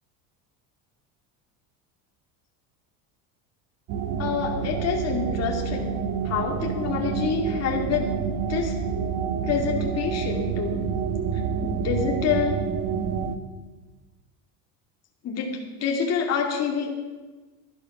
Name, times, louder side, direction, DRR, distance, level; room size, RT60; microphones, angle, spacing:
sound 1, 3.9-13.4, right 6 dB, 50° right, 1.2 m, -28 dB
voice 1, 4.2-8.1 8.5-8.7 9.5-10.8 11.6-12.6 15.2-15.5 15.8-17.0, left 6 dB, 40° left, 1 dB, 2.4 m, -27 dB
12.5 x 12.5 x 6.1 m, 1.3 s
cardioid pair, 140°, 41 cm